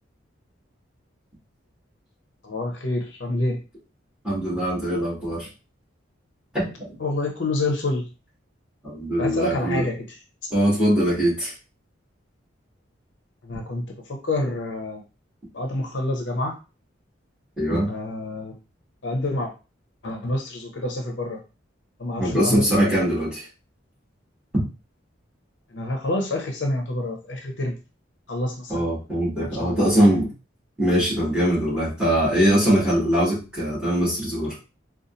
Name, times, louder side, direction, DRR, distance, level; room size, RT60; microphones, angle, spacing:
voice 1, 2.4-3.6 7.0-8.1 9.2-10.2 13.4-15.0 15.5-16.6 17.9-18.6 19.0-19.5 20.0-21.4 22.0-23.0 25.7-27.8 28.3-28.9 29.4-30.1, left 2 dB, 65° left, 3 dB, 0.7 m, -28 dB
voice 2, 4.2-5.5 6.5-7.0 8.8-9.8 10.5-11.5 17.6-17.9 22.2-23.5 24.5-24.6 28.7-30.3 30.8-34.6, equal, 5° right, -8 dB, 1.9 m, -22 dB
3.9 x 2.4 x 2.6 m, 0.31 s
head